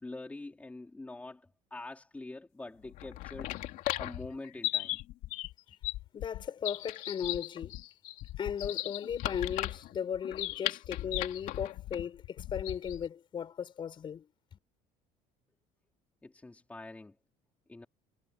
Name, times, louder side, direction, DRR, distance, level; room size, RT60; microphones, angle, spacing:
voice 1, 0.0-3.6 4.0-5.0 16.2-17.2 17.7-17.9, left 2 dB, 10° left, 4.3 m, -45 dB
sound 1, 2.8-13.1, left 16 dB, 65° left, 3.2 m, -37 dB
voice 2, 6.1-7.8 8.4-14.3, left 8 dB, 35° left, 6.9 m, -36 dB
cardioid pair, 150°, 15 cm